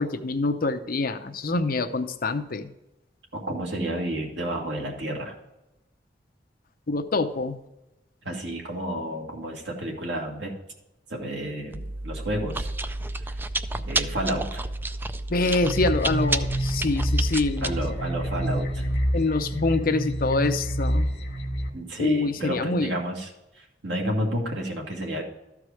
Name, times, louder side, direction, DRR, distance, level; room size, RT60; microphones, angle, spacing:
voice 1, 0.0-2.7 6.9-7.6 15.3-17.7 19.1-21.1 22.0-22.9, left 3 dB, 55° left, 8 dB, 0.7 m, -25 dB
voice 2, 3.3-5.4 8.2-10.5 11.1-12.7 13.2-13.4 13.8-14.6 17.6-19.0 21.7-25.2, right 1 dB, 90° right, 1 dB, 2.0 m, -31 dB
Chewing mastication, 11.7-19.0, right 2 dB, 10° right, 0.3 m, -31 dB
sound 1, 15.6-21.7, equal, 75° left, 1.6 m, -27 dB
13.0 x 4.8 x 4.8 m, 0.93 s
head